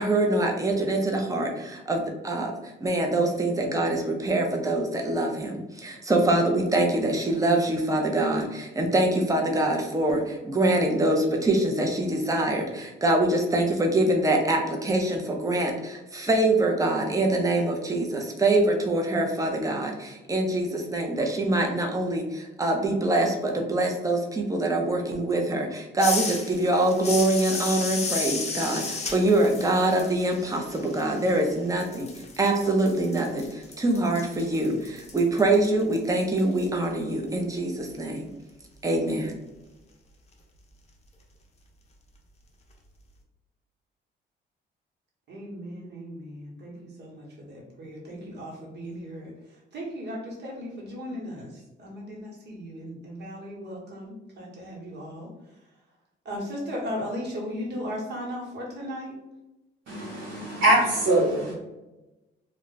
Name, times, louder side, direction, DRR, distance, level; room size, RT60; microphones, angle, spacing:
voice 1, 0.0-32.1 32.4-38.3 38.8-39.3, right 2 dB, 15° right, 1 dB, 0.7 m, -24 dB
sound 1, 26.0-31.5 31.8-36.7, left 4 dB, 35° left, 0.6 m, -34 dB
voice 2, 45.3-46.7 47.0-49.3 49.7-51.5 51.8-55.3 56.2-59.1, equal, 60° right, -2 dB, 1.2 m, -36 dB
voice 3, 59.9-61.5, right 1 dB, 85° right, -6 dB, 0.9 m, -23 dB
2.4 x 2.2 x 3.8 m, 1.0 s
cardioid pair, 90°, 20 cm